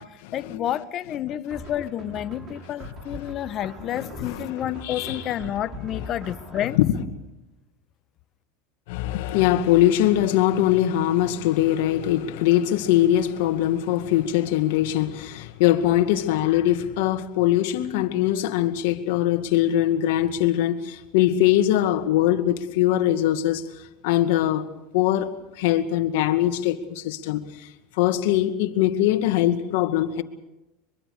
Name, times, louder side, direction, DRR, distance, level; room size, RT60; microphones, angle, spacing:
voice 1, 0.0-6.8, left 11 dB, 40° left, 1.1 m, -30 dB
sound 1, 1.5-6.7, right 1 dB, 30° right, 6.2 m, -42 dB
voice 2, 3.9-5.2 6.8-6.9 8.9-23.6 24.0-24.7 24.9-27.7 28.0-30.2, left 13 dB, 70° left, 2.1 m, -22 dB
23.5 x 23.0 x 6.7 m
supercardioid pair, 125°, 0 cm